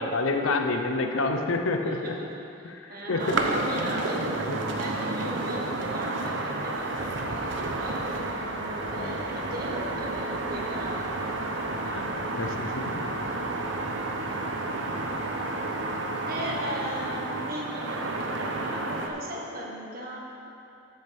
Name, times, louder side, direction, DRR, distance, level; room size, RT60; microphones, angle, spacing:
voice 1, 0.0-2.2 2.6-3.4 3.8-3.9 4.2-4.6 8.9-9.2 11.8-13.0, left 3 dB, 90° left, 4 dB, 0.8 m, -29 dB
voice 2, 1.9-2.3 2.6-4.3 4.8-11.0 11.5-11.6 16.2-20.2, right 1 dB, 50° right, -2 dB, 1.6 m, -37 dB
sound 1, 3.2-19.1, right 2 dB, 65° right, 0.9 m, -31 dB
13.5 x 8.2 x 3.5 m, 2.8 s
head